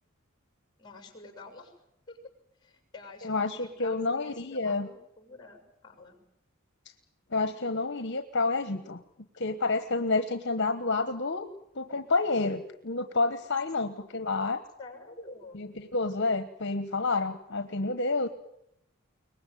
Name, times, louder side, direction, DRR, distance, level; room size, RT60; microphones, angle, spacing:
voice 1, 0.8-1.7 2.1-2.2 2.6-6.2 14.0-14.1 14.8-15.6, left 2 dB, 20° left, 5 dB, 6.3 m, -48 dB
voice 2, 3.2-4.9 7.3-9.0 9.4-11.5 11.7-14.6 15.5-18.3, left 3 dB, 55° left, 10 dB, 1.3 m, -29 dB
23.0 x 20.0 x 9.3 m, 0.79 s
head